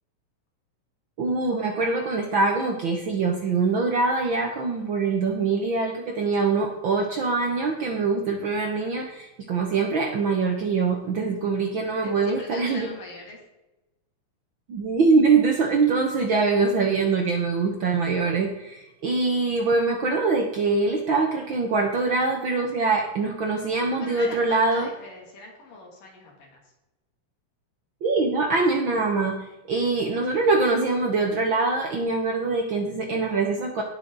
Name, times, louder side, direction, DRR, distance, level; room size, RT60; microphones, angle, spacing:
voice 1, 1.2-12.9 14.7-24.9 28.0-33.8, right 4 dB, 75° right, 2 dB, 1.1 m, -23 dB
voice 2, 12.0-13.5 24.0-26.7, left 2 dB, 80° left, -1 dB, 4.5 m, -41 dB
18.0 x 6.3 x 4.0 m, 0.97 s
omnidirectional pair, 3.9 m